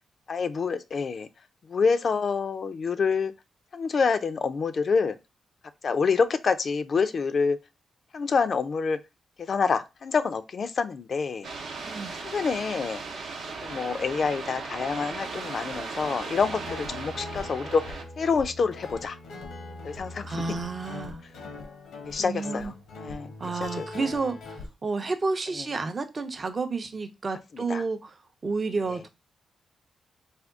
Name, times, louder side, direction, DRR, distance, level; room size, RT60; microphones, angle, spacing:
voice 1, 0.3-1.3 1.7-3.3 3.7-5.2 5.8-7.6 8.1-9.0 9.4-11.5 12.2-13.0 13.6-19.2 19.8-20.3 22.1-23.3 23.6-23.9 25.6-25.7 27.5-27.8, left 5 dB, 55° left, 0.4 m, -27 dB
sound 1, 11.4-18.0, right 4 dB, 80° right, 0.7 m, -37 dB
Guitar, 16.4-24.7, left 2 dB, 90° left, 0.8 m, -41 dB
voice 2, 20.2-21.2 22.2-22.7 23.4-28.2 28.4-29.1, right 4 dB, 40° right, 0.5 m, -31 dB
3.5 x 2.2 x 3.6 m
cardioid pair, 65°, 0 cm